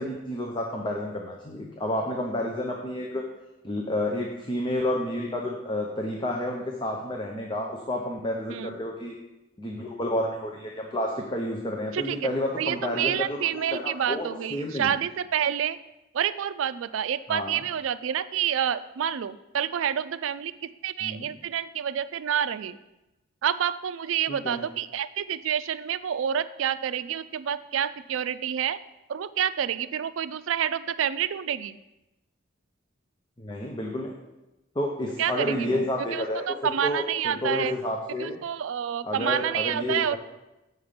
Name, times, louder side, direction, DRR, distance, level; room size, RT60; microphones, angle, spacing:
voice 1, 0.0-3.2 3.6-9.2 9.6-15.0 17.3-17.6 21.0-21.3 24.3-24.6 33.4-34.1 34.7-38.4 39.0-40.2, left 1 dB, 25° left, 0 dB, 0.7 m, -30 dB
voice 2, 11.9-12.3 12.6-15.8 16.1-20.5 20.8-22.8 23.4-28.8 29.1-31.8 35.2-37.8 38.2-40.2, right 9 dB, 75° right, 14 dB, 0.4 m, -28 dB
7.8 x 5.6 x 5.1 m, 0.97 s
head